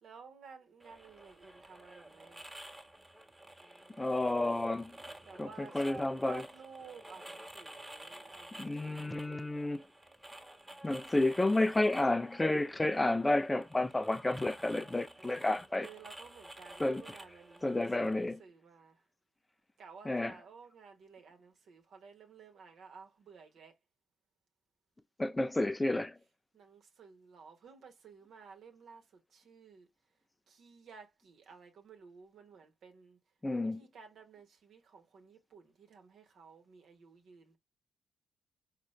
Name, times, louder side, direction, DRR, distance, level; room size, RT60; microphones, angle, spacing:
voice 1, 0.0-2.5 5.2-8.8 15.8-19.0 19.8-23.8 26.5-29.9 30.5-33.2 33.6-37.6, right 5 dB, 60° right, 1.1 m, -54 dB
sound 1, 0.8-18.3, right 1 dB, 15° right, 1.2 m, -52 dB
voice 2, 4.0-5.0 5.4-6.4 8.6-9.8 10.8-15.9 16.8-17.0 17.6-18.4 20.1-20.3 25.2-26.2 33.4-33.8, left 2 dB, 20° left, 0.4 m, -31 dB
4.3 x 2.5 x 3.1 m
hypercardioid pair, 40°, 0 cm